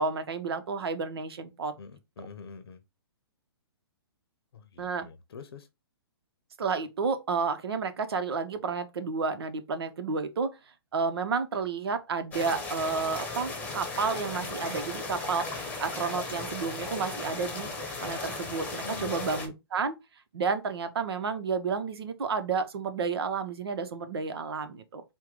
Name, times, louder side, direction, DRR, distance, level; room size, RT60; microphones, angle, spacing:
voice 1, 0.0-1.7 4.8-5.1 6.6-10.6 10.9-17.7 18.0-20.0 20.3-25.0, right 5 dB, 70° right, 0.9 m, -31 dB
voice 2, 1.8-2.8 4.5-5.7 18.8-19.2, left 5 dB, 65° left, 0.7 m, -45 dB
sound 1, 12.3-19.5, left 3 dB, 10° left, 1.1 m, -36 dB
4.5 x 2.3 x 3.7 m
hypercardioid pair, 130°, 14 cm